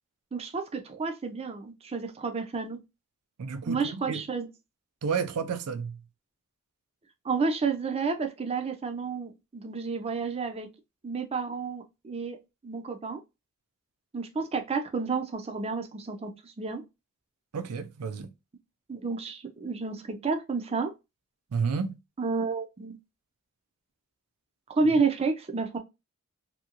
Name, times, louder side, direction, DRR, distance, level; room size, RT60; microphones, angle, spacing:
voice 1, 0.3-2.8 3.7-4.5 7.2-10.7 11.0-12.4 12.6-13.2 14.1-16.8 18.9-20.9 22.2-23.0 24.8-25.8, right 4 dB, 25° right, 0.4 m, -30 dB
voice 2, 3.4-4.2 5.0-6.0 17.5-18.3 21.5-22.0, right 5 dB, 90° right, 0.4 m, -31 dB
2.9 x 2.7 x 2.4 m
head